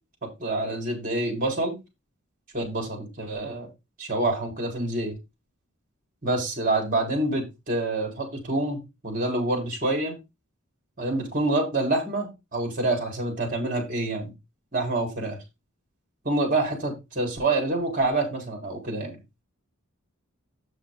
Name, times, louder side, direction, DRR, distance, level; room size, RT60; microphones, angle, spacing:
voice 1, 0.4-1.8 2.5-3.7 4.0-5.2 6.2-10.1 11.0-14.3 14.7-15.4 16.2-19.2, right 2 dB, 40° right, 1 dB, 4.1 m, -27 dB
8.7 x 6.4 x 3.8 m, 0.24 s
head